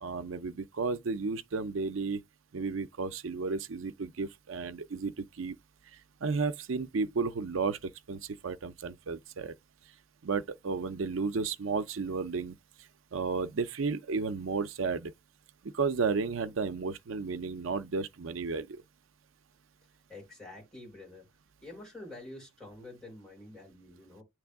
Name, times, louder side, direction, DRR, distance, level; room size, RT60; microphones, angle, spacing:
voice 1, 0.0-2.2 2.5-5.5 6.2-9.5 10.2-12.6 13.1-15.1 15.7-18.7, right 4 dB, 70° right, 0.5 m, -33 dB
voice 2, 20.1-21.3 21.6-24.2, left 2 dB, 5° left, 4.8 m, -47 dB
8.6 x 3.3 x 3.5 m
head